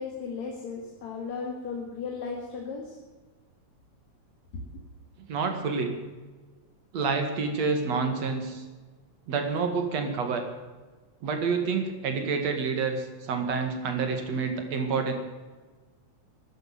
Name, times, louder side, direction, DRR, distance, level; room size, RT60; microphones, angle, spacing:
voice 1, 0.0-3.0 4.5-4.6, left 5 dB, 65° left, 0 dB, 3.4 m, -35 dB
voice 2, 5.2-5.9 6.9-8.6 9.3-10.4 11.2-15.1, right 5 dB, 60° right, 6 dB, 3.1 m, -28 dB
13.0 x 12.0 x 9.0 m, 1.3 s
omnidirectional pair, 3.5 m